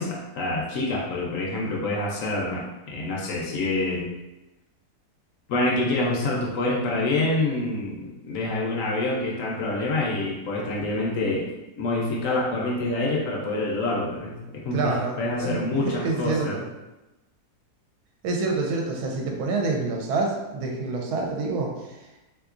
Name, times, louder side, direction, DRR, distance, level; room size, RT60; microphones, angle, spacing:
voice 1, 0.0-4.1 5.5-11.4 11.8-16.6, left 2 dB, 65° left, -2 dB, 0.9 m, -26 dB
voice 2, 14.7-16.6 18.2-21.7, right 3 dB, 75° right, 0 dB, 1.1 m, -27 dB
3.6 x 2.8 x 2.4 m, 1.0 s
omnidirectional pair, 1.7 m